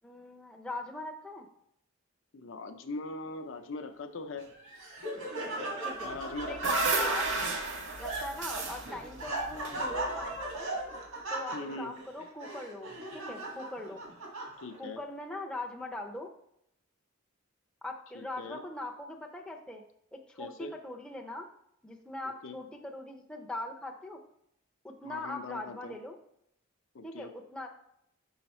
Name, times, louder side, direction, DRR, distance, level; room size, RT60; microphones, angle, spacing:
voice 1, 0.0-1.5 5.8-6.1 6.5-7.3 8.0-10.7 11.3-12.9 13.1-14.0 14.8-16.3 17.8-19.8 20.1-21.5 21.8-24.2 24.8-26.2 27.0-27.7, left 2 dB, 5° left, 0 dB, 0.5 m, -41 dB
voice 2, 2.3-4.5 6.0-6.8 11.5-11.9 14.6-15.0 18.1-18.6 20.4-20.7 22.4-22.6 25.0-26.0 26.9-27.3, left 3 dB, 60° left, 7 dB, 0.5 m, -41 dB
Laughter, 4.4-14.9, right 2 dB, 75° right, 1.8 m, -38 dB
sound 1, 6.1-10.4, right 3 dB, 60° right, 0.9 m, -32 dB
5.7 x 4.8 x 4.3 m, 0.75 s
head